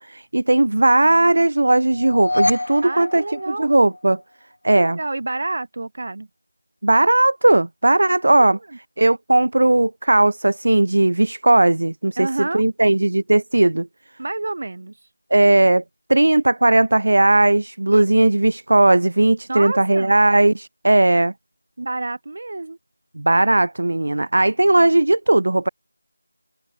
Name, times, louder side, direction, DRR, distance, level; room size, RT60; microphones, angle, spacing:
voice 1, 0.0-4.2 4.6-5.0 6.8-8.6 9.0-13.9 15.3-15.8 16.1-21.3 23.2-25.7, right 2 dB, 55° right, 1.1 m, -17 dB
sound 1, 1.9-4.2, left 1 dB, 65° left, 3.7 m, -26 dB
voice 2, 2.8-3.7 4.7-6.3 8.4-8.8 12.2-12.6 14.2-15.0 17.9-18.0 19.5-20.1 21.8-22.8, right 2 dB, 40° right, 2.3 m, -29 dB
open air
figure-of-eight pair, 180°, 0 cm